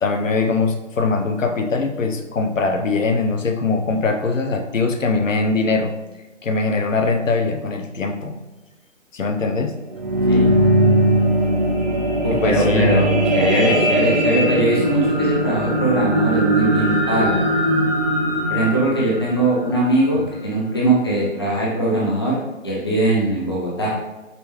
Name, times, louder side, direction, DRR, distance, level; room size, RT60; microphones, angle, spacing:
voice 1, 0.0-6.0 6.4-8.4 9.1-9.8 12.3-13.0, left 3 dB, 75° left, 5 dB, 0.7 m, -21 dB
sound 1, 9.7-20.3 20.9-21.0, right 1 dB, 35° right, 0.5 m, -19 dB
voice 2, 12.2-17.4 18.5-22.4 22.6-23.9, right 1 dB, 20° left, -6 dB, 0.4 m, -21 dB
5.3 x 3.2 x 2.9 m, 1.0 s
figure-of-eight pair, 140°, 39 cm